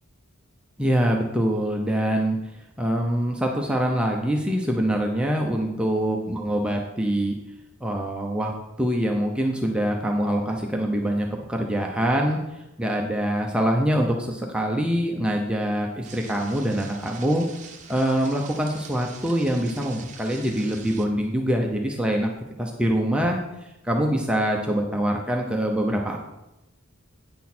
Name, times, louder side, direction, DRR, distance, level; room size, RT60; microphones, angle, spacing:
voice 1, 0.8-2.4 2.8-7.3 7.8-17.4 17.9-22.3 22.6-26.3, equal, 5° right, 0 dB, 0.6 m, -24 dB
sound 1, 16.0-21.1, right 6 dB, 35° right, 0.8 m, -44 dB
9.3 x 6.3 x 4.3 m, 0.93 s
head